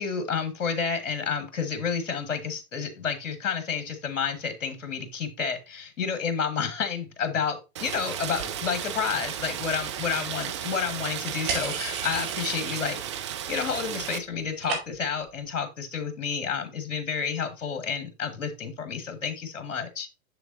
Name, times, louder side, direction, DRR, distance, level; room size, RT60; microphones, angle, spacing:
voice 1, 0.0-13.0 13.5-20.1, left 6 dB, 60° left, 9 dB, 1.6 m, -30 dB
Rain, 7.8-14.2, right 9 dB, 20° right, 0.4 m, -34 dB
sound 1, 11.5-13.1 13.4-13.9 14.2-15.2, right 5 dB, 45° right, 2.5 m, -34 dB
6.8 x 6.8 x 2.6 m, 0.27 s
figure-of-eight pair, 110°, 44 cm